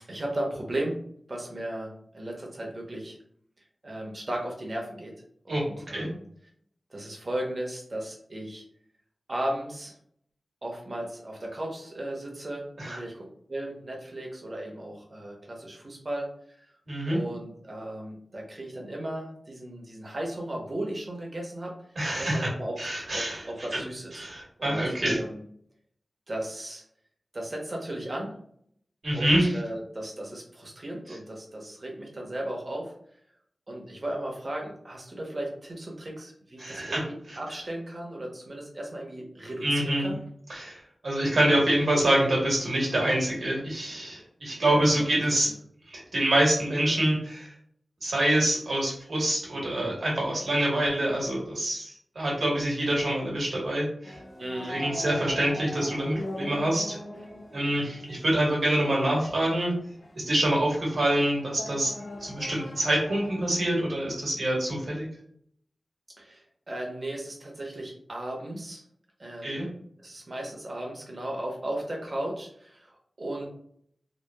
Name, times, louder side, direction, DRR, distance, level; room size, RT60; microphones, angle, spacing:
voice 1, 0.1-1.0 1.3-3.2 3.8-5.1 5.4-6.2 6.9-8.6 9.3-9.9 10.6-16.7 17.1-21.7 22.2-24.3 24.6-25.4 26.3-26.8 27.3-28.3 29.1-32.9 33.7-40.2 44.7-45.0 45.4-45.5 54.4-54.8 66.2-68.8 69.2-69.7 70.0-73.5, right 1 dB, 45° right, -1 dB, 0.8 m, -36 dB
voice 2, 5.5-6.1 12.8-13.0 16.9-17.2 22.0-22.5 22.8-23.4 23.7-23.8 24.1-25.2 29.0-29.5 36.6-37.0 37.3-37.4 39.6-40.1 40.5-45.5 45.9-47.5 48.0-54.2 54.7-57.0 57.5-59.7 60.1-61.9 62.2-65.1 69.4-69.7, right 1 dB, 75° right, -4 dB, 1.1 m, -26 dB
sound 1, 54.0-63.7, left 1 dB, 65° left, 0.5 m, -41 dB
2.9 x 2.1 x 2.2 m, 0.64 s
wide cardioid pair, 75°, 0 cm